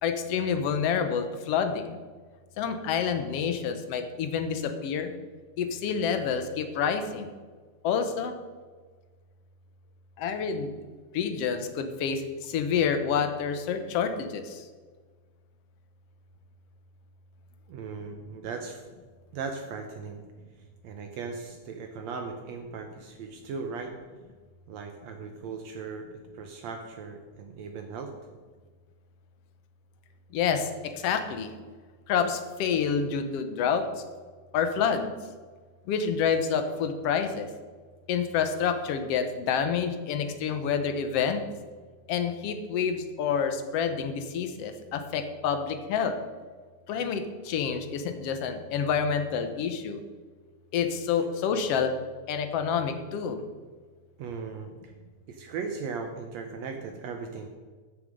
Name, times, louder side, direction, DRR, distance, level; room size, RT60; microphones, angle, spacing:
voice 1, 0.0-2.0 2.6-5.1 5.6-7.3 7.8-8.3 10.2-10.7 11.1-14.7 30.3-30.7 31.0-31.5 32.1-33.8 34.5-35.1 35.9-37.5 38.1-41.4 42.1-46.1 46.9-50.0 50.7-51.9 52.3-53.4, left 7 dB, 65° left, 7 dB, 1.6 m, -28 dB
voice 2, 17.7-18.9 19.3-20.2 20.8-23.9 24.7-26.1 26.3-28.1 54.2-54.9 55.3-57.5, right 5 dB, 70° right, 4 dB, 1.9 m, -38 dB
14.0 x 6.7 x 5.2 m, 1.5 s
omnidirectional pair, 3.5 m